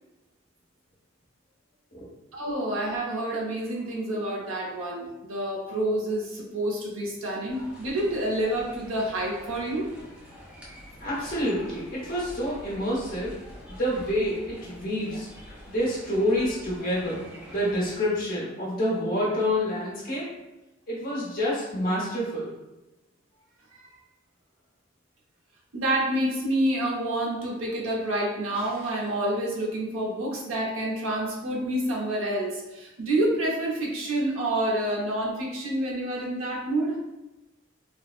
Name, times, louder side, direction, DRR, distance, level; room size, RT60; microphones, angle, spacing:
voice 1, 2.3-9.9 15.1-15.2 23.7-23.8 25.7-37.0, right 1 dB, 90° right, -2 dB, 0.7 m, -28 dB
sound 1, 7.5-18.0, equal, 5° right, 0.4 m, -46 dB
voice 2, 11.0-13.3 13.7-15.3 15.7-20.3 20.9-22.5, equal, 45° left, -7 dB, 0.9 m, -28 dB
3.3 x 2.0 x 2.4 m, 0.99 s
head